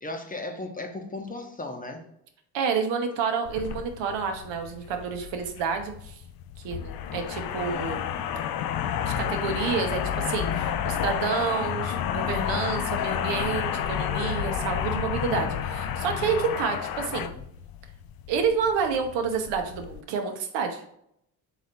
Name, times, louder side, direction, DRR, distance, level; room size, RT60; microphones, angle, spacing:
voice 1, 0.0-2.1 17.0-17.4, left 2 dB, 20° left, 3 dB, 0.9 m, -36 dB
voice 2, 2.5-6.2 6.6-8.1 9.0-17.3 18.3-20.8, right 6 dB, 70° right, 5 dB, 0.9 m, -29 dB
sound 1, 3.4-20.0, left 9 dB, 50° left, 0.5 m, -31 dB
3.9 x 3.0 x 4.1 m, 0.73 s
supercardioid pair, 70°, 46 cm